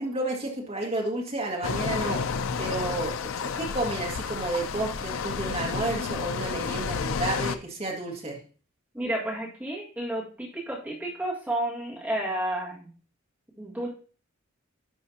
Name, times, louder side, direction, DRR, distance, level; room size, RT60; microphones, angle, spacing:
voice 1, 0.0-2.2 2.6-3.1 3.4-8.4, right 2 dB, 30° right, 0 dB, 1.9 m, -31 dB
sound 1, 1.6-7.6, left 5 dB, 75° left, 0.5 m, -31 dB
voice 2, 8.9-12.9 13.6-13.9, right 1 dB, 10° right, -6 dB, 2.0 m, -31 dB
11.0 x 5.6 x 2.9 m, 0.39 s
head